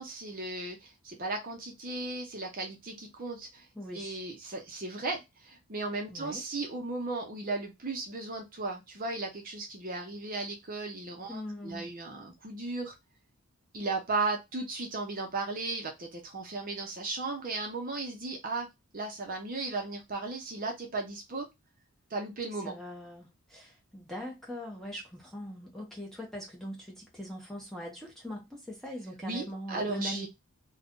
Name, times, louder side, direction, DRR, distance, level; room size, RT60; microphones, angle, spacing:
voice 1, 0.0-3.7 3.9-12.9 13.7-18.7 18.9-21.5 22.1-22.7 29.2-30.3, right 3 dB, 40° right, 0.7 m, -36 dB
voice 2, 3.7-4.2 6.1-6.4 11.3-11.9 22.6-30.3, equal, ahead, 0.8 m, -41 dB
2.5 x 2.3 x 3.6 m
head